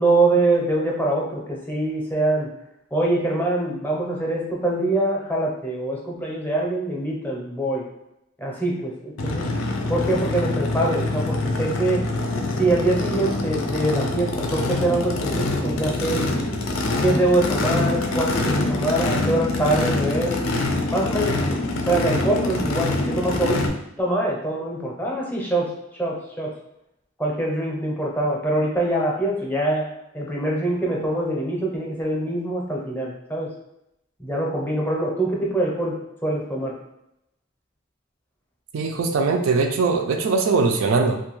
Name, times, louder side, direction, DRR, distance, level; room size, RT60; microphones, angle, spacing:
voice 1, 0.0-2.5 2.9-7.8 8.4-9.5 9.9-12.0 12.6-16.2 17.0-20.4 20.9-21.6 21.9-23.6 24.0-25.7 25.9-26.5 27.2-29.9 30.1-33.5 34.2-35.9 36.2-36.7, right 2 dB, 10° left, -3 dB, 0.6 m, -24 dB
Race car auto racing / Idling / Accelerating revving vroom, 9.2-23.7, left 2 dB, 85° left, 0.4 m, -25 dB
voice 2, 38.7-41.2, right 4 dB, 75° right, 5 dB, 0.4 m, -21 dB
2.5 x 2.3 x 3.0 m, 0.83 s
head